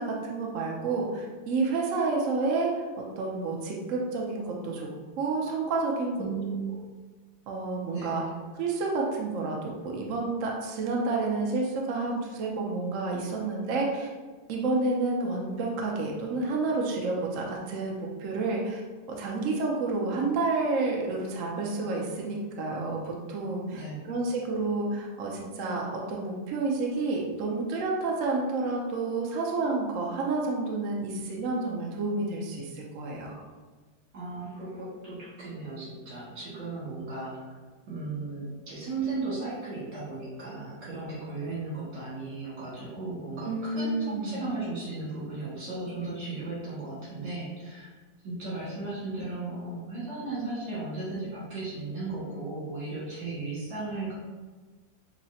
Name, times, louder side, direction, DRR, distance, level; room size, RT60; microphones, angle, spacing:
voice 1, 0.0-2.8 3.2-4.9 5.2-6.2 7.5-8.2 8.5-14.1 14.5-18.8 19.2-33.4 43.4-44.4, right 3 dB, 65° right, -1 dB, 0.8 m, -30 dB
voice 2, 6.2-6.8 7.9-8.2 23.7-24.1 34.1-37.6 37.9-47.9 48.2-54.1, right 3 dB, 85° right, -9 dB, 2.4 m, -36 dB
5.5 x 2.1 x 2.7 m, 1.3 s
omnidirectional pair, 1.9 m